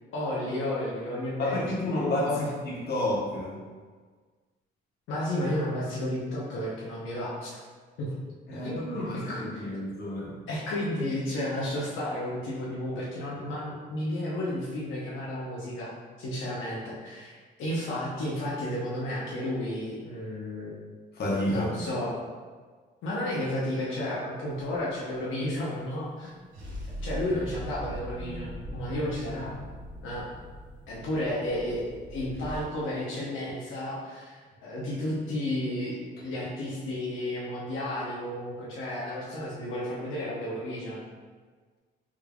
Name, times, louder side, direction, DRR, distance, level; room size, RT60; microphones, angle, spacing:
voice 1, 0.1-1.7 2.3-2.5 5.1-7.6 8.0-8.2 8.5-9.8 10.5-20.7 21.5-22.1 23.0-26.3 27.0-29.5 30.0-30.3 30.9-31.8 32.1-41.0, left 1 dB, 80° left, -6 dB, 0.8 m, -32 dB
voice 2, 1.4-3.6 8.5-10.4 21.1-21.7, left 1 dB, 55° left, -4 dB, 0.9 m, -30 dB
sound 1, 24.5-25.2 26.5-32.6, equal, 85° right, 0.8 m, -40 dB
3.6 x 3.2 x 2.3 m, 1.5 s
cardioid pair, 90°, 20 cm